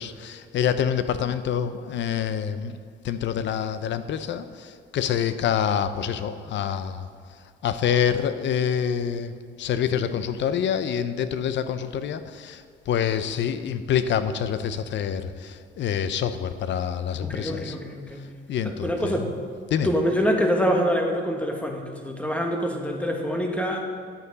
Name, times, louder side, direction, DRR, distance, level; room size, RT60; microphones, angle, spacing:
voice 1, 0.0-2.8 3.0-7.1 7.6-9.3 9.6-17.7 18.5-19.3 19.7-19.9, left 8 dB, 65° left, 12 dB, 0.6 m, -26 dB
voice 2, 17.2-18.3 18.6-19.3 19.8-23.9, equal, 5° left, 2 dB, 1.3 m, -25 dB
10.0 x 8.2 x 4.0 m, 2.1 s
cardioid pair, 90°, 20 cm